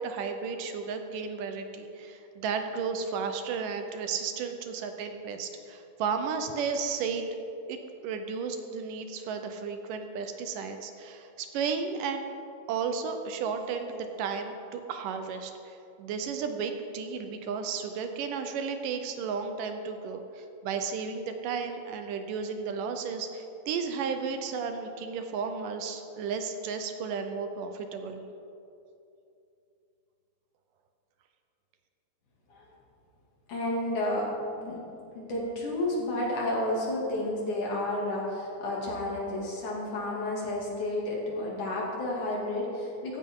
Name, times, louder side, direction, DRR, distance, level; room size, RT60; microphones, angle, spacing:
voice 1, 0.0-7.3 7.7-12.3 12.7-28.2, right 5 dB, 75° right, 6 dB, 2.4 m, -33 dB
voice 2, 33.5-34.3 34.6-34.8 35.2-43.2, left 1 dB, 65° left, -3 dB, 3.9 m, -31 dB
15.5 x 15.0 x 3.8 m, 2.7 s
omnidirectional pair, 3.9 m